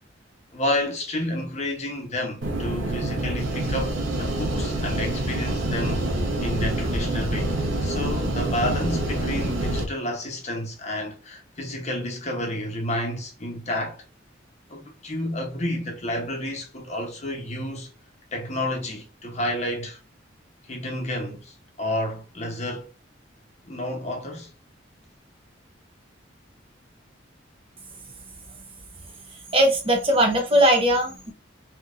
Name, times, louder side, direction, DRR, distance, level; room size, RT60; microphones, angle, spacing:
voice 1, 0.5-6.0 6.4-14.0 14.7-17.9 18.3-20.0 20.6-22.9 23.6-24.5, left 1 dB, 35° left, 0.8 m, -30 dB
sound 1, 2.4-9.9, right 1 dB, 80° right, 1.0 m, -26 dB
voice 2, 29.5-31.3, right 1 dB, 30° right, 0.7 m, -19 dB
3.4 x 2.8 x 2.4 m
head